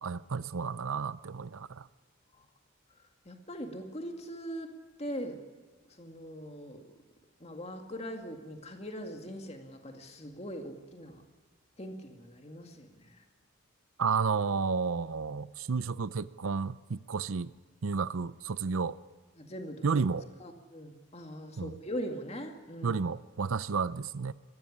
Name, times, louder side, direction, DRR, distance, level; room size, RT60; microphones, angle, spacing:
voice 1, 0.0-1.9 14.0-17.5 17.8-19.0 19.8-20.2 21.6-21.8 22.8-24.3, right 5 dB, 80° right, 0.6 m, -31 dB
voice 2, 3.0-4.7 5.0-5.4 5.9-6.8 7.4-11.2 11.8-13.2 19.4-20.0 20.4-23.0, equal, 30° left, 2.1 m, -41 dB
21.5 x 15.5 x 9.9 m
head